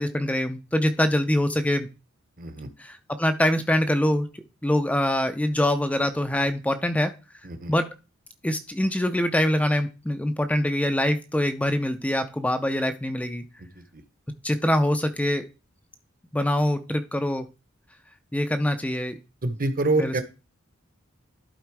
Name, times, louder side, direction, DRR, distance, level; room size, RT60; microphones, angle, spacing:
voice 1, 0.0-1.9 2.8-4.3 4.6-7.1 7.7-7.9 8.4-13.4 14.4-15.4 16.3-17.5 18.3-19.2 20.0-20.2, left 1 dB, 5° left, 9 dB, 0.5 m, -24 dB
voice 2, 2.4-2.7 7.4-7.7 13.6-14.0 19.4-20.2, right 2 dB, 45° right, 10 dB, 1.0 m, -27 dB
11.5 x 4.2 x 4.7 m, 0.30 s
head